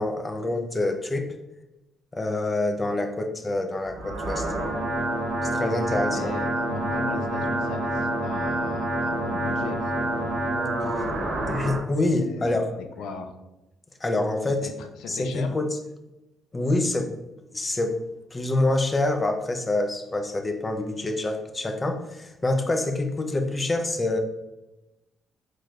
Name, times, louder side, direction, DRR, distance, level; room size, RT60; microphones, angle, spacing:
voice 1, 0.0-1.3 2.1-4.5 5.4-6.3 11.5-12.7 14.0-14.7 15.1-15.7 16.5-17.1 17.5-18.0 18.3-24.2, left 2 dB, 25° left, 5 dB, 0.4 m, -26 dB
sound 1, 3.8-11.8, right 1 dB, 70° right, 0.9 m, -27 dB
voice 2, 6.1-11.2 12.0-12.5 12.8-13.4 14.5-15.6, left 4 dB, 85° left, 6 dB, 0.4 m, -38 dB
4.2 x 3.1 x 2.4 m, 0.97 s
cardioid pair, 90°, 0 cm